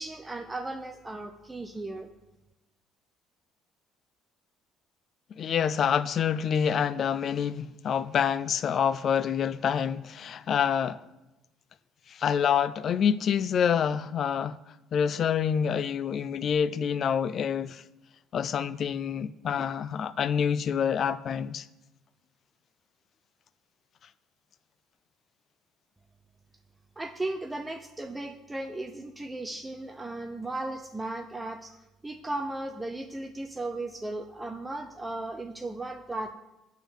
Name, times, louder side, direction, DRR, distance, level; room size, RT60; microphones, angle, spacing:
voice 1, 0.0-2.1 27.0-31.8 32.0-36.3, right 2 dB, 15° right, 0.5 m, -36 dB
voice 2, 5.4-11.0 12.1-14.6 14.9-17.8 18.3-21.7, left 8 dB, 50° left, 0.3 m, -27 dB
9.0 x 3.8 x 6.9 m
cardioid pair, 110°, 0 cm